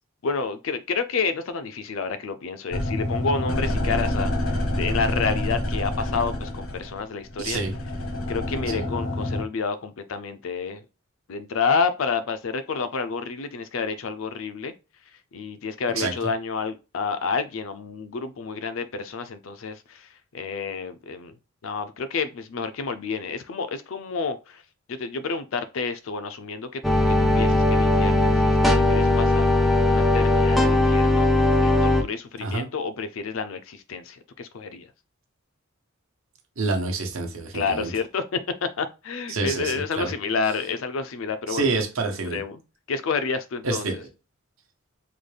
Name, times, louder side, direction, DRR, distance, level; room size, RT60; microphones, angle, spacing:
voice 1, 0.2-7.6 8.3-10.8 11.3-14.7 15.3-21.4 21.6-24.6 24.9-29.5 29.9-31.3 31.6-34.9 37.5-41.8 42.3-42.6 42.9-44.0, left 5 dB, 70° left, 0.4 m, -29 dB
sound 1, 2.7-9.4, left 1 dB, 85° left, 1.2 m, -27 dB
voice 2, 7.4-7.7 8.7-8.8 15.9-16.1 32.4-32.7 36.6-37.9 39.3-40.1 41.5-42.4 43.6-44.0, right 3 dB, 75° right, 0.9 m, -27 dB
sound 2, 26.8-32.0, left 2 dB, ahead, 0.3 m, -19 dB
3.9 x 2.3 x 3.3 m
head